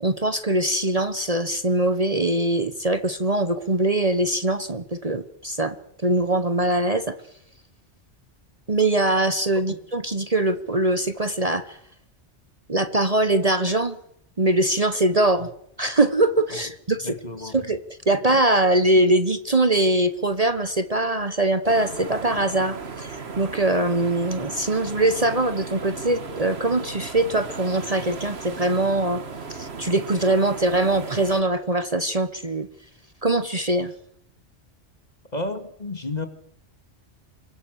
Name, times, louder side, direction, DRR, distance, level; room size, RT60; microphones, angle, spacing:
voice 1, 0.0-5.7 6.0-7.1 8.7-11.8 12.7-14.0 14.4-15.5 15.8-17.1 17.5-29.2 29.5-32.7 33.2-33.9, right 2 dB, 35° right, 10 dB, 1.3 m, -22 dB
voice 2, 17.0-17.7 35.3-36.3, left 2 dB, 35° left, 8 dB, 2.3 m, -32 dB
sound 1, 21.6-31.4, right 4 dB, 60° right, 1.8 m, -36 dB
27.0 x 23.5 x 6.5 m, 0.71 s
omnidirectional pair, 1.2 m